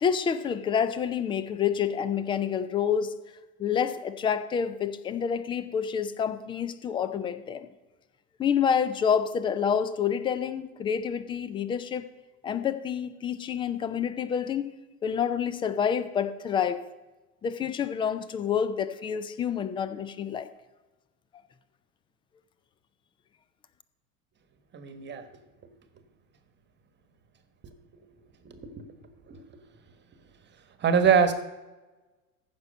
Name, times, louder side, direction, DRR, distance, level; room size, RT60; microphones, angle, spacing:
voice 1, 0.0-3.1 3.6-7.7 8.4-12.0 12.4-14.7 15.0-16.8 17.4-20.5, left 7 dB, 10° left, 13 dB, 0.3 m, -28 dB
voice 2, 24.7-25.2 28.4-28.8 29.3-29.4 30.8-31.3, right 7 dB, 25° right, 9 dB, 1.2 m, -23 dB
14.5 x 6.0 x 5.3 m, 1.1 s
figure-of-eight pair, 90°, 44 cm